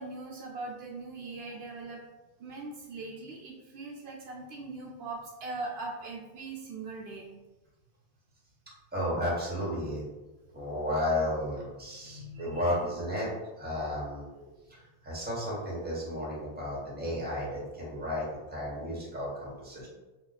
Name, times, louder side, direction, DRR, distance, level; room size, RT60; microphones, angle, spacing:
voice 1, 0.0-2.0 2.4-7.3 12.0-12.7 17.9-18.0, right 3 dB, 75° right, -1 dB, 0.8 m, -41 dB
voice 2, 8.9-10.0 10.5-13.3 13.6-14.8 15.0-19.9, left 1 dB, 10° right, -6 dB, 0.9 m, -33 dB
2.4 x 2.2 x 3.9 m, 1.1 s
omnidirectional pair, 1.1 m